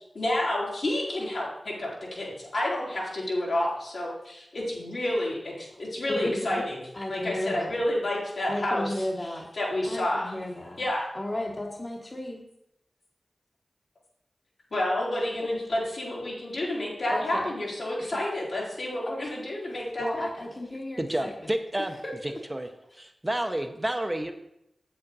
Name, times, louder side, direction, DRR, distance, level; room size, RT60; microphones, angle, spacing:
voice 1, 0.1-6.8 7.1-8.9 9.6-10.3 10.8-11.0 14.7-20.3, left 1 dB, 75° left, -5 dB, 3.2 m, -29 dB
voice 2, 6.1-6.6 6.9-7.8 8.5-9.4 9.8-10.8 11.1-12.4 17.1-17.5 17.9-18.0 19.1-19.2 20.0-21.5 22.0-22.4, left 1 dB, 30° left, 0 dB, 1.3 m, -34 dB
voice 3, 21.0-21.9 22.5-22.7 22.9-24.3, right 1 dB, 20° right, 5 dB, 0.8 m, -29 dB
7.9 x 7.8 x 4.1 m, 0.81 s
wide cardioid pair, 65°, 0 cm